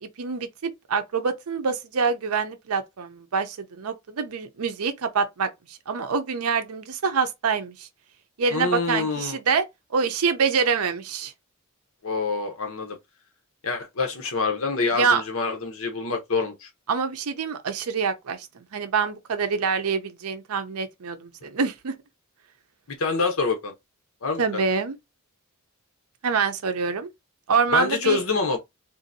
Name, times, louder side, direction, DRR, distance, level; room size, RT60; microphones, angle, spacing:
voice 1, 0.0-7.9 8.4-9.6 9.9-11.3 14.9-15.2 16.9-21.9 24.4-25.0 26.2-27.1 27.5-28.2, right 5 dB, 85° right, 0.6 m, -26 dB
voice 2, 8.5-9.4 12.0-13.0 13.6-16.7 23.0-23.7 24.2-24.7 27.7-28.6, left 4 dB, 70° left, 0.9 m, -26 dB
3.7 x 2.6 x 2.6 m
head